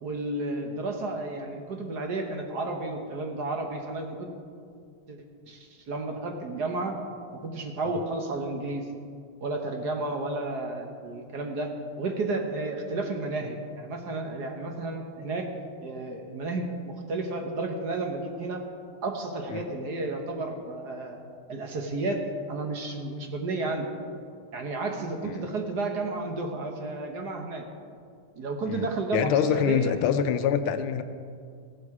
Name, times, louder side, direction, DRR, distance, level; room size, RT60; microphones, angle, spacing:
voice 1, 0.0-4.3 5.1-5.2 5.5-6.9 7.4-8.8 9.4-11.7 12.0-15.5 15.8-18.6 19.0-21.2 21.5-22.2 22.5-23.9 24.5-27.6 28.4-29.9, right 2 dB, 55° right, 3 dB, 1.6 m, -32 dB
voice 2, 28.7-31.0, left 8 dB, 80° left, 10 dB, 1.5 m, -26 dB
16.0 x 12.0 x 4.8 m, 2.3 s
omnidirectional pair, 2.4 m